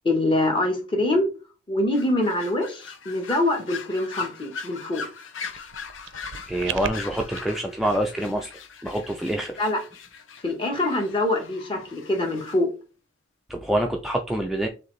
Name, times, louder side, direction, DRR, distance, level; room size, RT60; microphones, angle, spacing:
voice 1, 0.0-1.3 1.7-5.0 9.6-9.8 10.4-12.7, left 1 dB, 25° left, 2 dB, 1.0 m, -24 dB
sound 1, 1.9-12.6, left 5 dB, 90° left, 0.7 m, -40 dB
sound 2, 5.5-7.4, right 8 dB, 80° right, 0.4 m, -36 dB
voice 2, 6.5-8.5 8.8-9.6 13.5-14.7, right 1 dB, ahead, 1 dB, 0.3 m, -26 dB
6.5 x 2.6 x 3.1 m, 0.34 s
head